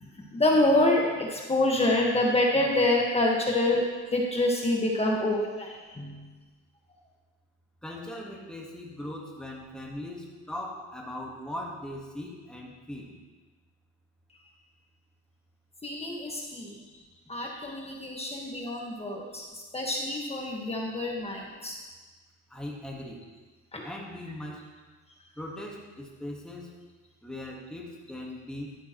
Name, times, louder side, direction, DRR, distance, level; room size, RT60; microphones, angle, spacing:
voice 1, 0.3-3.8 4.1-6.2 15.8-16.8 17.3-19.4 19.7-21.8 23.7-23.9, left 1 dB, 20° left, -1 dB, 1.5 m, -26 dB
voice 2, 7.8-13.1 22.5-23.2 23.8-24.6 25.4-26.7 27.2-28.8, left 1 dB, 5° left, -2 dB, 1.5 m, -39 dB
11.5 x 8.7 x 3.1 m, 1.3 s
cardioid pair, 90°, 30 cm